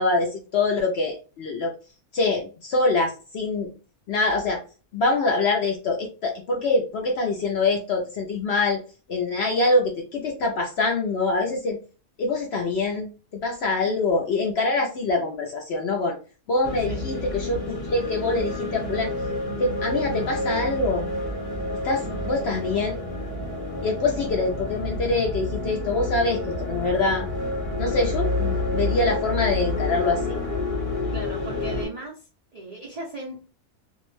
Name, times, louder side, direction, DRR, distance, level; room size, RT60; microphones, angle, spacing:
voice 1, 0.0-1.7 2.1-3.7 4.1-4.6 4.9-8.8 9.1-11.8 12.2-16.1 16.5-19.1 19.6-21.0 21.8-23.0 23.8-27.3 27.8-30.4, left 3 dB, 65° left, 1 dB, 0.6 m, -24 dB
sound 1, 16.6-31.9, left 2 dB, 30° left, 0.7 m, -29 dB
voice 2, 31.1-33.4, right 2 dB, 50° right, -5 dB, 0.4 m, -38 dB
2.6 x 2.0 x 3.0 m, 0.35 s
omnidirectional pair, 1.5 m